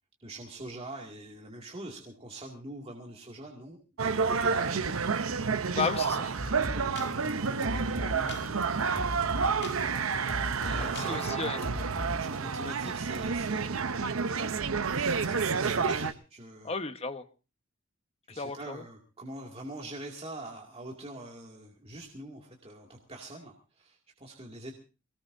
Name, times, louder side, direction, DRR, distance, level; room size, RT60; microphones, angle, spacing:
voice 1, 0.2-5.1 6.7-8.9 10.5-13.9 14.4-14.6 14.9-16.7 18.3-24.7, right 1 dB, 30° right, 0 dB, 2.3 m, -44 dB
sound 1, 4.0-16.1, right 5 dB, 80° right, 0.8 m, -30 dB
voice 2, 5.7-6.5 10.8-11.6 16.6-17.2 18.3-18.8, left 4 dB, 30° left, 8 dB, 1.2 m, -34 dB
sound 2, 6.4-12.2, left 1 dB, 55° left, 1.7 m, -39 dB
23.0 x 19.0 x 2.7 m, 0.33 s
head